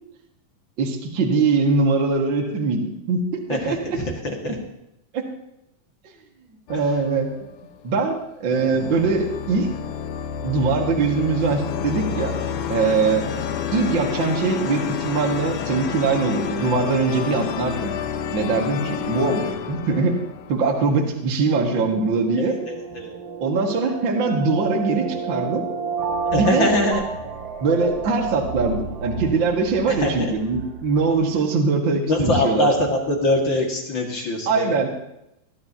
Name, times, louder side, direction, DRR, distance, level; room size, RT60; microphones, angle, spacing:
voice 1, 0.8-3.2 3.5-3.8 5.1-5.2 6.7-7.3 7.8-9.7 10.4-12.4 12.7-13.3 13.7-17.9 18.3-20.2 20.5-22.5 23.4-25.6 26.3-26.7 27.6-32.7 34.5-34.9, right 4 dB, 40° right, 0 dB, 1.9 m, -22 dB
voice 2, 3.5-4.5 22.4-23.1 26.3-27.0 30.0-30.3 32.1-34.7, left 1 dB, 40° left, 0 dB, 2.2 m, -23 dB
sound 1, 6.7-7.9 8.5-21.1, left 8 dB, 85° left, 1.4 m, -30 dB
sound 2, 21.7-26.9, right 5 dB, 75° right, 1.0 m, -30 dB
sound 3, 26.0-31.4, right 5 dB, 60° right, 1.8 m, -33 dB
21.5 x 13.0 x 2.9 m, 0.84 s
omnidirectional pair, 4.0 m